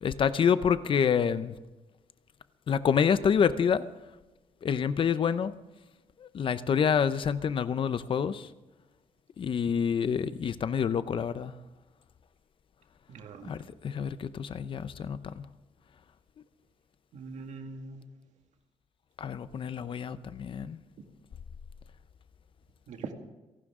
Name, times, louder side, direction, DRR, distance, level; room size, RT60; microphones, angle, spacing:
voice 1, 0.0-1.5 2.7-3.8 4.6-5.5 6.2-8.5 9.4-11.5 13.4-15.5 19.2-20.8, left 7 dB, 45° left, 14 dB, 0.6 m, -27 dB
voice 2, 13.1-13.5 17.1-18.0 22.9-23.1, right 4 dB, 80° right, 5 dB, 1.9 m, -42 dB
29.5 x 11.5 x 3.7 m, 1.1 s
wide cardioid pair, 155°, 12 cm